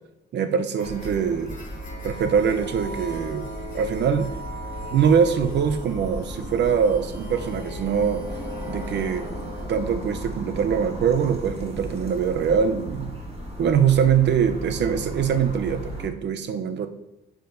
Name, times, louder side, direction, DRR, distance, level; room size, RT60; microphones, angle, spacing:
voice 1, 0.3-1.6 2.0-3.5 3.7-4.3 4.9-8.2 8.7-9.3 9.7-13.1 13.6-16.9, right 7 dB, 60° right, 9 dB, 0.7 m, -23 dB
sound 1, 0.7-9.6, equal, 40° left, 2.5 m, -39 dB
sound 2, 0.8-16.1, equal, 30° right, 1.6 m, -36 dB
10.0 x 5.0 x 2.6 m, 0.93 s
cardioid pair, 90°, 20 cm